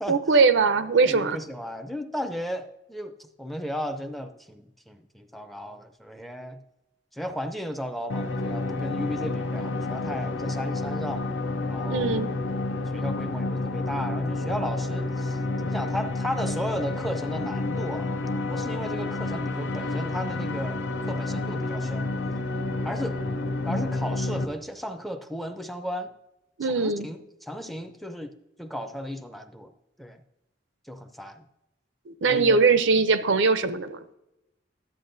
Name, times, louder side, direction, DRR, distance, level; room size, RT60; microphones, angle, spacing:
voice 1, 0.1-1.4 11.9-12.3 26.6-27.1 32.1-34.0, right 4 dB, 80° right, 11 dB, 0.6 m, -21 dB
voice 2, 1.0-6.6 7.1-11.3 11.7-12.2 12.9-18.1 18.5-22.1 22.8-23.2 23.6-26.1 26.6-28.3 28.6-29.7 30.0-30.2 30.9-31.4 32.3-32.6, equal, ahead, 7 dB, 0.5 m, -35 dB
sound 1, 8.1-24.4, left 2 dB, 80° left, 0.6 m, -29 dB
11.5 x 8.3 x 2.6 m, 0.90 s
head